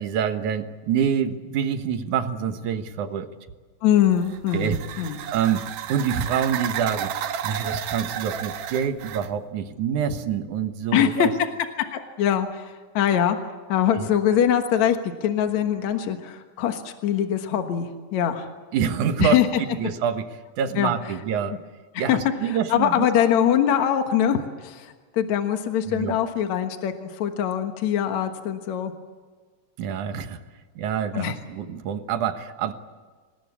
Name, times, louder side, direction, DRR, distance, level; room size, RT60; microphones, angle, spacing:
voice 1, 0.0-3.3 4.5-5.6 5.9-7.1 7.4-11.3 13.9-14.1 18.7-21.6 22.0-23.1 25.9-26.3 29.8-30.4 30.8-32.7, right 8 dB, 90° right, 8 dB, 2.8 m, -26 dB
voice 2, 3.8-5.2 10.9-11.3 11.8-13.4 13.7-18.5 19.2-19.6 20.8-20.9 21.9-22.2 22.5-28.9 31.1-31.4, left 10 dB, 70° left, 6 dB, 2.7 m, -23 dB
sound 1, 4.0-9.3, right 10 dB, 75° right, 2.3 m, -32 dB
26.5 x 19.5 x 8.4 m, 1.4 s
omnidirectional pair, 3.4 m